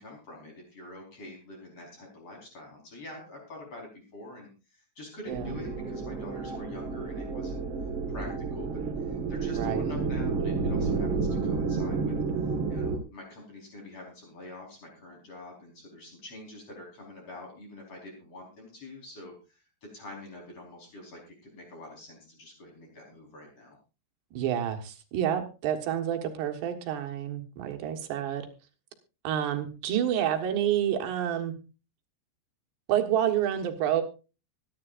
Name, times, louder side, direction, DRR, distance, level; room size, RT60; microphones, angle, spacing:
voice 1, 0.0-7.6 8.1-12.1 12.4-23.8, left 2 dB, 35° left, 0 dB, 5.2 m, -46 dB
sound 1, 5.3-13.0, right 4 dB, 55° right, 1.3 m, -30 dB
voice 2, 9.5-9.9 24.3-28.5 29.2-31.5 32.9-34.0, right 10 dB, 75° right, 5 dB, 3.5 m, -28 dB
24.0 x 10.0 x 2.5 m, 0.31 s
omnidirectional pair, 5.1 m